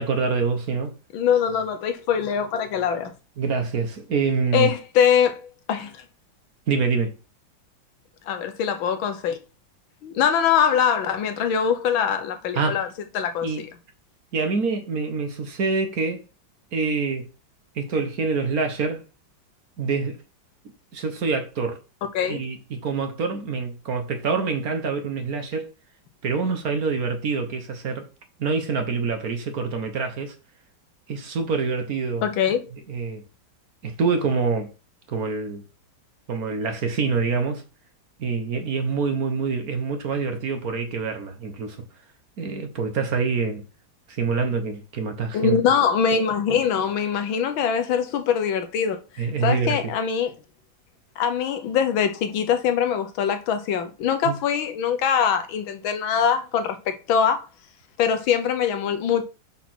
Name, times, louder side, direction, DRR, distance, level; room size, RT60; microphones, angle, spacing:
voice 1, 0.0-0.9 3.4-4.7 6.7-7.1 12.5-12.8 13.4-13.7 14.3-16.2 16.7-17.3 17.7-19.0 19.8-20.2 20.9-21.8 22.3-25.7 26.2-28.0 28.4-30.3 31.1-32.3 32.9-33.2 33.8-34.7 35.1-35.6 36.3-37.6 38.2-41.8 42.4-43.6 44.1-45.6 49.2-49.9 54.2-54.3, right 4 dB, 55° right, 1.5 m, -26 dB
voice 2, 1.1-3.1 4.5-6.0 8.3-9.4 10.0-12.9 13.1-13.7 22.1-22.4 32.2-32.7 45.3-50.3 51.2-57.4 58.0-59.2, left 7 dB, 90° left, 1.7 m, -23 dB
5.8 x 4.5 x 5.9 m
omnidirectional pair, 2.1 m